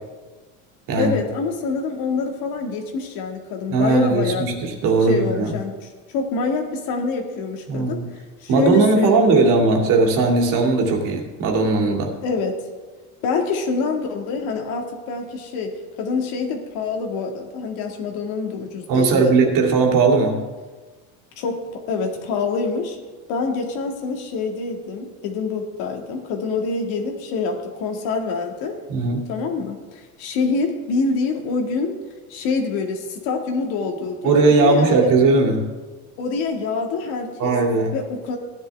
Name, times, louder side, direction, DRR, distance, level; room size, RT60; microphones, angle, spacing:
voice 1, 1.0-4.5 5.0-9.3 12.2-12.6 13.2-19.4 21.4-23.0 23.3-28.8 29.3-32.0 32.3-35.1 36.2-37.5 37.9-38.4, left 4 dB, 70° left, 3 dB, 2.0 m, -26 dB
voice 2, 3.7-5.5 7.7-8.1 8.5-12.1 18.9-20.4 28.9-29.2 34.2-35.6 37.4-37.9, right 3 dB, 60° right, 2 dB, 2.4 m, -18 dB
15.0 x 10.5 x 3.4 m, 1.3 s
cardioid pair, 120°, 37 cm